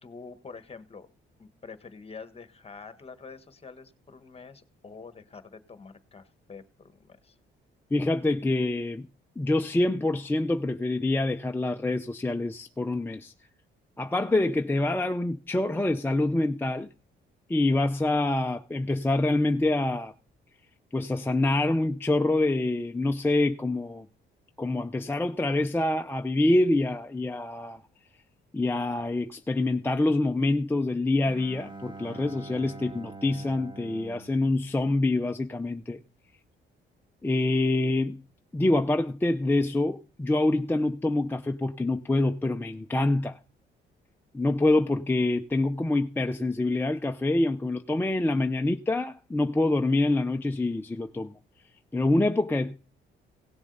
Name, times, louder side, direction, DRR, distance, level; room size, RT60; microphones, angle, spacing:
voice 1, 0.0-1.1 1.4-7.4, left 4 dB, 30° left, 1.3 m, -46 dB
voice 2, 7.9-9.1 9.4-13.3 14.0-16.9 17.5-20.1 20.9-24.1 24.6-27.8 28.5-36.0 37.2-38.2 38.5-43.4 44.3-51.3 51.9-52.8, left 2 dB, 10° left, 0.6 m, -26 dB
Bowed string instrument, 31.2-35.6, right 3 dB, 25° right, 1.3 m, -45 dB
17.0 x 7.2 x 4.0 m
cardioid pair, 90°, 20 cm